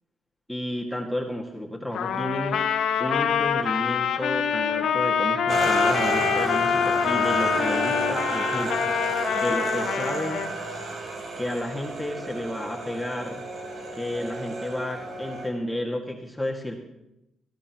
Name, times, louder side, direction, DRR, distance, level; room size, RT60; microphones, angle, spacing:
voice 1, 0.5-2.6 3.0-8.9 9.3-10.4 11.4-13.4 13.9-16.8, left 1 dB, 5° left, -1 dB, 2.1 m, -31 dB
Trumpet, 1.9-10.5, left 7 dB, 75° left, 1.3 m, -25 dB
Auto Rickshaw - Pass By, 5.5-15.5, right 3 dB, 55° right, 3.9 m, -31 dB
18.5 x 15.0 x 3.1 m, 0.89 s
cardioid pair, 90°, 0 cm